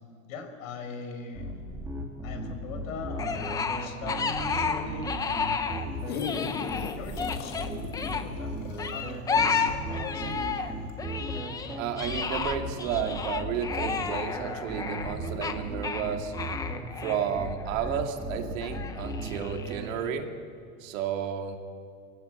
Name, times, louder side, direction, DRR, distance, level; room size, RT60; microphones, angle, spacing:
voice 1, 0.3-1.5 2.2-6.2 7.0-8.5 8.9-10.5, left 4 dB, 70° left, 6 dB, 4.6 m, -40 dB
sound 1, 1.3-19.9, right 1 dB, 5° right, 2.5 m, -36 dB
sound 2, 3.2-5.9 6.1-8.2 8.8-10.7 11.0-18.0 18.6-19.9, left 5 dB, 10° left, 0.6 m, -32 dB
sound 3, 5.7-10.4 10.9-11.0, left 6 dB, 45° left, 2.3 m, -38 dB
voice 2, 11.8-16.3 17.0-20.3 20.8-21.6, right 8 dB, 65° right, 4 dB, 2.4 m, -32 dB
25.0 x 16.0 x 8.8 m, 2.3 s
supercardioid pair, 155°, 42 cm